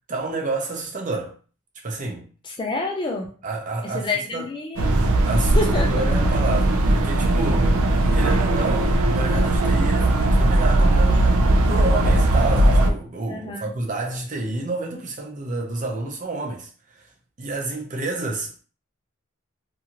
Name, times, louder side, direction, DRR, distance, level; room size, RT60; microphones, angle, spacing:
voice 1, 0.1-1.3 1.8-2.3 3.4-4.4 5.2-7.8 8.1-17.1 17.4-18.6, right 3 dB, 35° right, 0.6 m, -29 dB
voice 2, 2.4-3.3 3.8-5.0 5.5-6.0 13.3-13.7, left 2 dB, 20° left, 0.3 m, -28 dB
sound 1, 4.8-12.9, right 1 dB, 85° right, 0.4 m, -18 dB
2.7 x 2.4 x 2.8 m
head